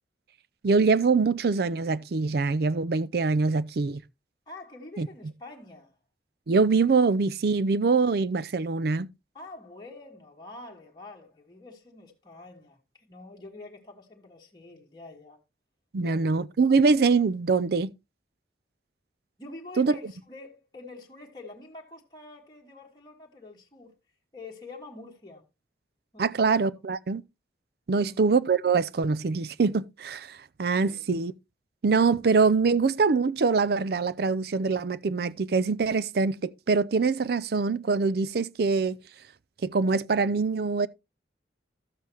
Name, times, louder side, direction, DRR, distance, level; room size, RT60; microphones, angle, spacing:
voice 1, 0.6-4.0 5.0-5.1 6.5-9.1 15.9-17.9 19.8-20.1 26.2-27.2 27.9-31.3 31.8-39.0 39.6-40.9, right 4 dB, 60° right, 0.5 m, -24 dB
voice 2, 4.5-5.9 9.3-15.4 16.0-16.3 19.4-23.9 24.3-25.4 26.1-26.7 27.9-28.2 30.8-31.1, left 2 dB, 25° left, 1.4 m, -46 dB
12.5 x 7.5 x 3.0 m
head